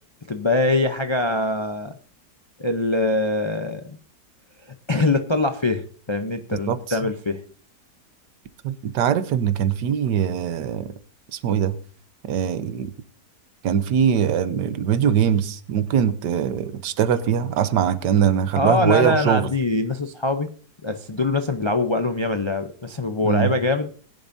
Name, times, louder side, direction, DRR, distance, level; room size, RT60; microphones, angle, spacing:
voice 1, 0.3-2.0 2.6-4.0 4.9-7.4 18.5-20.5 20.8-23.9, left 2 dB, 50° left, 0.3 m, -23 dB
voice 2, 8.6-10.9 11.3-11.8 12.3-12.9 13.6-19.5 23.2-23.5, right 8 dB, 85° right, 1.5 m, -22 dB
20.5 x 10.5 x 2.7 m
omnidirectional pair, 1.8 m